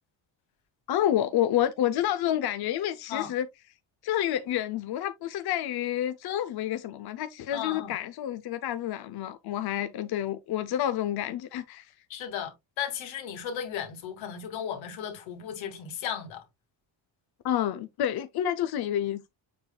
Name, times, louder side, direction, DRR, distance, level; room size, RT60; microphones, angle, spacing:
voice 1, 0.9-3.5 4.0-11.9 17.4-19.3, left 11 dB, 55° left, 0.7 m, -29 dB
voice 2, 7.5-7.9 12.1-16.4, left 9 dB, 85° left, 2.5 m, -35 dB
7.3 x 5.9 x 2.3 m
cardioid pair, 115°, 45 cm